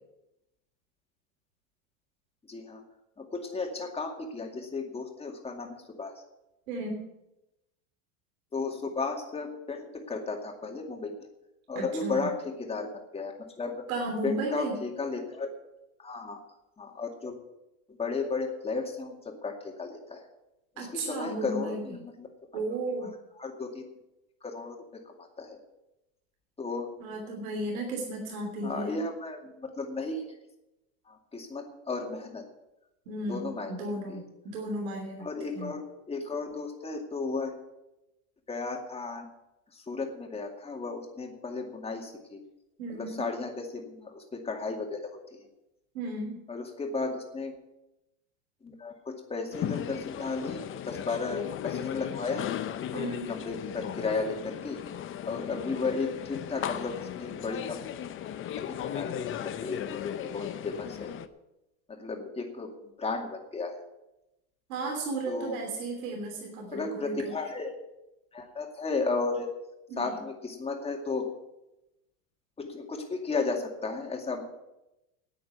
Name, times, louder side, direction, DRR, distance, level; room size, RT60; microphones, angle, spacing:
voice 1, 2.5-2.8 3.2-6.1 8.5-11.2 11.7-13.8 14.2-15.5 16.0-16.4 16.8-17.4 18.0-20.2 20.8-22.3 23.0-23.1 23.4-23.8 24.4-25.6 26.6-26.9 28.6-30.2 31.1-32.4 33.3-34.2 35.2-35.8 36.1-37.5 38.5-39.3 39.7-42.4 42.9-45.0 45.3-45.5 46.5-47.5 48.6-52.5 52.9-54.8 55.2-57.8 58.6-61.1 61.9-63.8 65.3-65.6 66.7-67.7 68.3-69.5 70.0-71.3 72.6-74.4, left 4 dB, 15° left, 2 dB, 2.3 m, -34 dB
voice 2, 6.7-7.1 11.7-12.3 13.9-14.7 20.8-21.9 22.5-23.1 27.0-29.0 33.1-35.3 35.5-35.7 42.8-43.3 45.9-46.4 52.9-53.3 64.7-67.3 69.9-70.2, right 2 dB, 85° right, 1 dB, 3.2 m, -34 dB
sound 1, 49.5-61.3, left 10 dB, 30° left, 0.7 m, -36 dB
9.2 x 9.1 x 9.4 m, 0.93 s
supercardioid pair, 130°, 41 cm